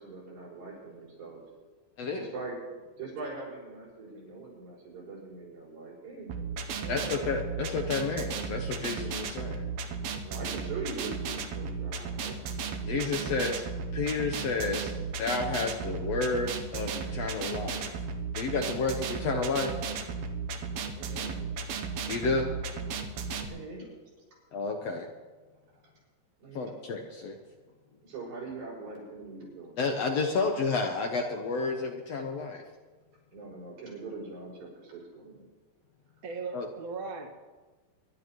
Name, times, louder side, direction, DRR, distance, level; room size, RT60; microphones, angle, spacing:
voice 1, 0.0-1.4 2.1-2.6 3.0-6.3 6.8-7.2 10.2-12.5 12.7-13.4 18.7-19.0 21.0-21.3 23.5-23.9 26.4-26.7 28.0-29.7 30.2-30.6 33.3-35.5, right 3 dB, 90° right, -5 dB, 7.5 m, -42 dB
voice 2, 2.0-2.3 6.9-9.6 12.9-13.6 13.9-14.9 15.2-17.8 18.3-19.8 22.1-22.5 24.5-25.1 26.5-27.4 29.8-32.6 36.5-36.7, left 4 dB, 75° left, 3 dB, 1.5 m, -31 dB
sound 1, 6.3-23.5, right 5 dB, 70° right, 1.8 m, -35 dB
voice 3, 36.2-37.3, right 4 dB, 40° right, 0 dB, 1.3 m, -37 dB
26.5 x 12.0 x 3.1 m, 1.3 s
omnidirectional pair, 4.1 m